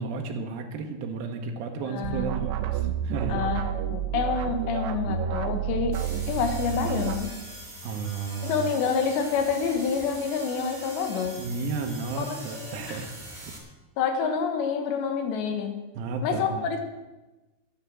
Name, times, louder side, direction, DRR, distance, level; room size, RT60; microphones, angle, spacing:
voice 1, 0.0-3.5 7.8-8.7 11.4-13.5 15.9-16.6, right 4 dB, 70° right, 2 dB, 2.5 m, -33 dB
voice 2, 1.9-2.4 3.3-6.0 6.3-7.3 8.4-11.4 12.2-13.0 14.0-15.8 16.2-16.8, left 6 dB, 75° left, 6 dB, 3.5 m, -28 dB
sound 1, 2.0-7.2, right 8 dB, 85° right, 3.1 m, -29 dB
sound 2, 5.9-13.6, right 1 dB, 20° right, 1.3 m, -42 dB
10.5 x 10.5 x 7.6 m, 1.1 s
omnidirectional pair, 5.2 m